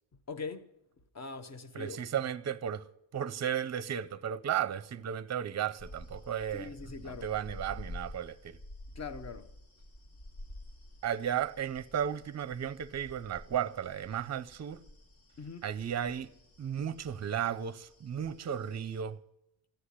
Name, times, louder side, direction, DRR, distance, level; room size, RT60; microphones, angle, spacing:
voice 1, 0.3-0.7 1.1-2.0 6.5-7.3 8.9-9.5 15.4-15.7, left 4 dB, 35° left, 0.8 m, -42 dB
voice 2, 1.7-2.9 3.1-6.7 7.0-8.6 11.0-14.8 15.6-16.3 16.6-19.2, right 9 dB, 35° right, 0.6 m, -34 dB
sound 1, 5.8-19.0, left 1 dB, 85° left, 2.7 m, -50 dB
14.5 x 9.9 x 10.0 m
wide cardioid pair, 160°, 47 cm